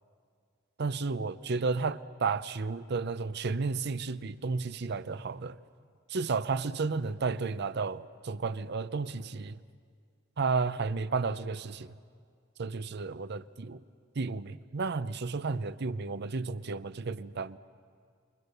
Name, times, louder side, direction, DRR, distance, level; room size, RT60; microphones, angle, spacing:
voice 1, 0.8-5.6 6.1-9.6 10.4-11.9 12.6-13.8 14.2-17.6, right 4 dB, 60° right, 0.6 m, -32 dB
28.5 x 22.0 x 6.8 m
head